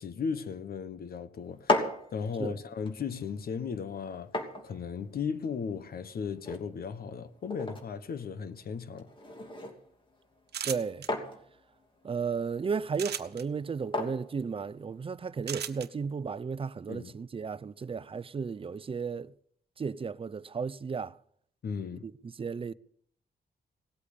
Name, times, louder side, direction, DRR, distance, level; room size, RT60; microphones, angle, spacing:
voice 1, 0.0-4.4 4.6-9.1 16.9-17.1 21.6-22.0, left 6 dB, 65° left, 1.2 m, -36 dB
sound 1, 1.4-15.3, left 2 dB, 30° left, 3.0 m, -38 dB
sound 2, 10.5-11.1 12.9-13.4 15.5-15.9, right 9 dB, 85° right, 1.1 m, -35 dB
voice 2, 10.6-11.1 12.0-19.3 19.8-21.2 22.0-22.7, right 5 dB, 35° right, 0.6 m, -34 dB
18.0 x 8.5 x 8.5 m
cardioid pair, 105°, 17 cm